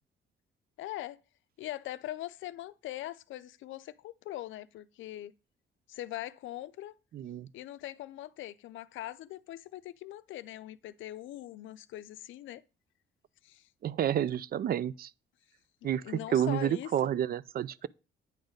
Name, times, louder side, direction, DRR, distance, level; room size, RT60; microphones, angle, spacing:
voice 1, 0.8-1.2 1.6-5.3 5.9-7.0 7.5-12.6 13.4-13.7 15.8-17.1, left 14 dB, 75° left, 0.5 m, -41 dB
voice 2, 7.1-7.5 13.8-15.1 15.8-16.0 16.3-17.9, right 10 dB, 50° right, 0.4 m, -30 dB
8.9 x 4.0 x 5.1 m
cardioid pair, 90°, 20 cm